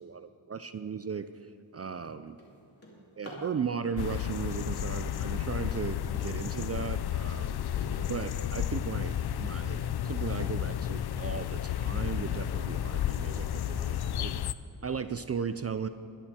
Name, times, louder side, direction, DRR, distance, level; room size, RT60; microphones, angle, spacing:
voice 1, 0.0-2.4 3.2-7.6 8.0-14.4 14.8-15.9, right 6 dB, 30° right, 11 dB, 0.4 m, -36 dB
Drawer open or close, 0.9-1.1 1.6-3.6 4.6-6.2 6.7-9.2 9.8-9.9 10.4-10.5 10.9-11.3, equal, 30° left, 3.1 m, -51 dB
sound 1, 4.0-14.5, left 10 dB, 50° left, 0.5 m, -32 dB
21.0 x 11.0 x 4.4 m, 2.5 s
wide cardioid pair, 105°, 50 cm